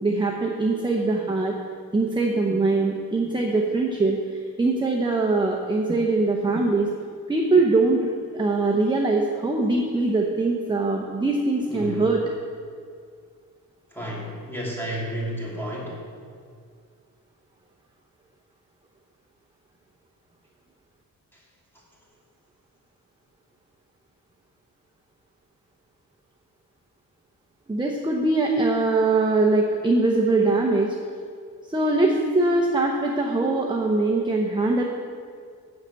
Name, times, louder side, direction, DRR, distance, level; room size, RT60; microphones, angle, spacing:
voice 1, 0.0-1.5 1.9-4.2 4.6-6.9 7.3-8.1 8.3-12.2 27.7-30.9 31.7-34.8, right 2 dB, 15° right, 0 dB, 0.8 m, -22 dB
voice 2, 11.6-12.1 13.9-16.0, equal, 5° left, -5 dB, 2.8 m, -32 dB
8.1 x 6.6 x 8.1 m, 2.2 s
wide cardioid pair, 140°, 36 cm